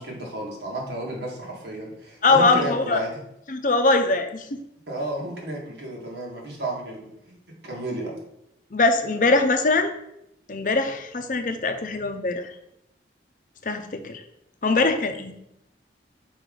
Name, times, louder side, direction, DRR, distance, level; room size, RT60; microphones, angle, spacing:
voice 1, 0.0-3.1 4.9-7.4 7.6-8.1, right 1 dB, 80° right, -2 dB, 1.8 m, -32 dB
voice 2, 2.2-3.0 3.5-4.4 8.7-9.9 10.5-12.4 13.7-14.2 14.6-15.3, left 3 dB, 45° left, 7 dB, 0.6 m, -22 dB
5.5 x 4.9 x 3.8 m, 0.80 s
head